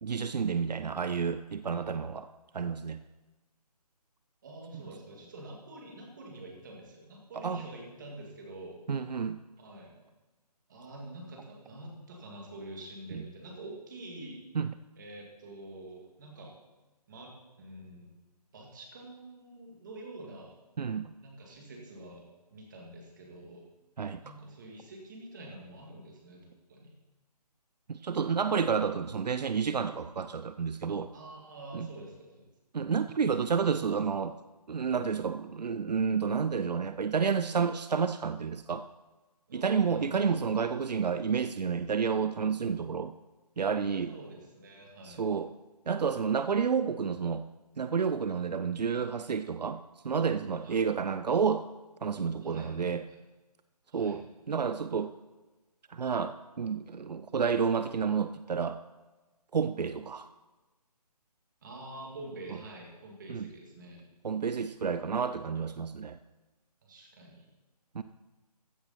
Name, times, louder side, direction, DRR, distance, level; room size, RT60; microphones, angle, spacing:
voice 1, 0.0-2.3 2.5-3.0 7.4-7.6 8.9-9.4 14.5-14.7 20.8-21.1 24.0-24.2 27.9-31.1 31.7-31.9 32.7-34.3 34.7-38.8 39.5-43.1 43.6-44.1 45.0-45.5 45.9-47.4 47.8-51.7 52.0-53.1 53.9-55.1 55.9-58.8 59.5-60.3 63.3-63.5 64.2-66.2 67.9-68.0, right 6 dB, 80° right, 11 dB, 0.6 m, -30 dB
voice 2, 4.4-8.8 9.6-10.0 10.7-14.4 15.0-16.5 17.1-18.1 18.5-20.5 21.2-22.2 22.5-23.6 24.2-26.9 31.1-32.4 39.5-40.3 44.1-45.2 50.6-50.8 52.4-53.2 53.9-54.2 61.6-64.0 66.8-67.4, right 1 dB, 30° right, -1 dB, 2.4 m, -46 dB
15.0 x 8.0 x 4.3 m, 1.2 s
hypercardioid pair, 170°, 21 cm